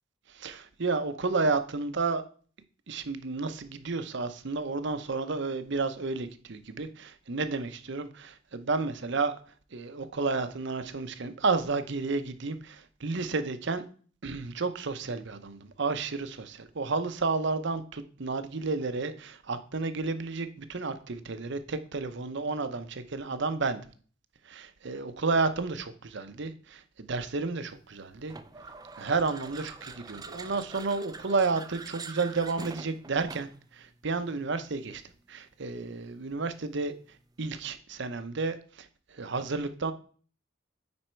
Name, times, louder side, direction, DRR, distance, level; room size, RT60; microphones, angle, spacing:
voice 1, 0.3-2.2 2.9-9.3 9.7-13.8 14.2-23.8 24.5-28.3 29.0-35.0 35.3-36.9 37.4-38.9 39.1-39.9, right 3 dB, 65° right, 11 dB, 0.8 m, -31 dB
sound 1, 28.3-33.7, right 3 dB, 20° right, 0.5 m, -44 dB
9.7 x 4.3 x 4.4 m, 0.42 s
head